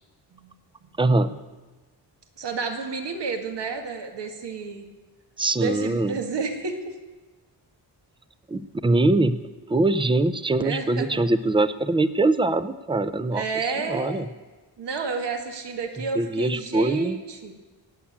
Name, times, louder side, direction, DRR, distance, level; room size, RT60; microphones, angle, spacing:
voice 1, 1.0-1.4 5.4-6.2 8.5-9.4 9.7-13.4 13.8-14.3 16.1-17.2, right 2 dB, 15° right, 13 dB, 0.4 m, -22 dB
voice 2, 2.4-4.9 5.6-7.0 10.6-11.2 13.3-14.3 14.8-17.5, right 4 dB, 75° right, 4 dB, 2.0 m, -31 dB
18.5 x 7.2 x 8.6 m, 1.3 s
wide cardioid pair, 170°, 41 cm